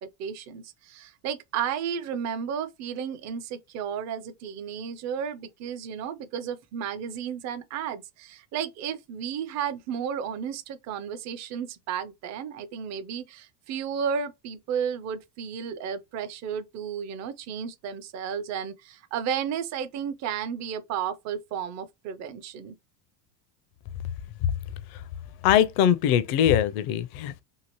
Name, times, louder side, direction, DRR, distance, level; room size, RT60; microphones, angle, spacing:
voice 1, 0.0-22.7, right 7 dB, 40° right, 0.5 m, -33 dB
voice 2, 25.4-27.4, left 10 dB, 55° left, 0.5 m, -22 dB
2.9 x 2.5 x 2.9 m
supercardioid pair, 115°, 45 cm